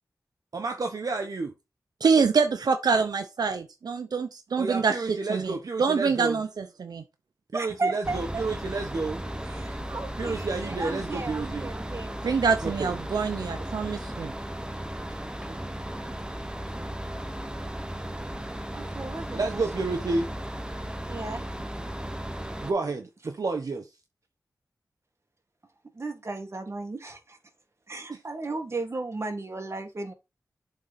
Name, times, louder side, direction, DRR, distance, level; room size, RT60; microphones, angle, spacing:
voice 1, 0.5-1.5 4.6-6.4 7.5-9.2 10.2-11.7 12.6-12.9 15.5-15.6 19.3-20.3 22.6-23.9 28.1-28.2, right 3 dB, 65° right, 1.0 m, -30 dB
voice 2, 2.0-7.0 12.2-14.3, right 5 dB, 90° right, 0.7 m, -26 dB
voice 3, 7.5-8.4 9.5-12.1 18.7-19.6 20.1-20.2 21.1-21.4 26.0-27.4 27.9-30.1, right 3 dB, 45° right, 1.9 m, -35 dB
sound 1, 8.0-22.7, right 1 dB, 10° right, 0.9 m, -35 dB
7.2 x 3.8 x 5.7 m
wide cardioid pair, 80°, 7 cm